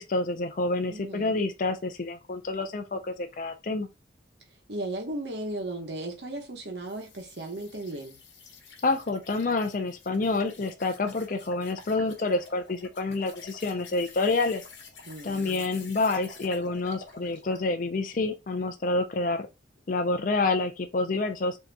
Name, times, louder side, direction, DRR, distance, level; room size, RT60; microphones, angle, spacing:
voice 1, 0.0-3.9 8.8-14.6 15.2-19.5 19.9-21.6, left 3 dB, 45° left, 0.4 m, -28 dB
voice 2, 0.9-1.4 4.7-8.2 15.0-15.6, right 1 dB, 60° right, 1.1 m, -36 dB
sound 1, 6.9-17.7, left 4 dB, 75° left, 1.0 m, -49 dB
6.4 x 2.8 x 2.2 m
head